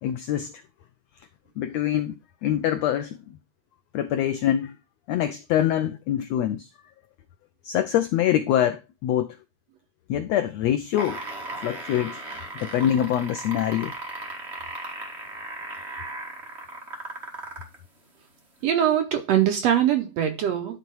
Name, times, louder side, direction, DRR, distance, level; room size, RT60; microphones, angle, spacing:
voice 1, 0.0-0.5 1.6-2.1 2.4-3.2 3.9-4.8 5.1-6.7 7.6-9.4 10.1-11.2 11.6-12.2 12.6-13.9, left 11 dB, 85° left, 1.5 m, -24 dB
sound 1, 10.8-17.8 18.6-18.7, right 2 dB, 25° right, 1.6 m, -36 dB
voice 2, 18.6-20.8, right 10 dB, 70° right, 1.7 m, -22 dB
11.5 x 4.0 x 4.6 m
omnidirectional pair, 3.8 m